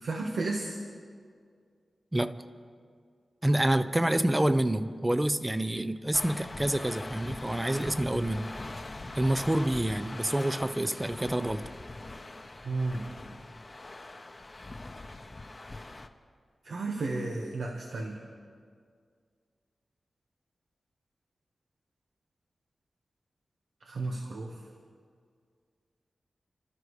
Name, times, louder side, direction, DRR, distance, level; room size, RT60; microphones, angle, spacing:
voice 1, 0.0-0.8 12.6-13.0 16.6-18.2 23.8-24.5, right 3 dB, 90° right, 1 dB, 1.4 m, -33 dB
voice 2, 2.1-2.5 3.4-8.6 9.2-11.7, right 1 dB, 15° right, 11 dB, 0.6 m, -28 dB
sound 1, 6.1-16.1, left 2 dB, 30° left, 0.8 m, -42 dB
29.5 x 13.5 x 3.2 m, 2.1 s
wide cardioid pair, 105°, 0 cm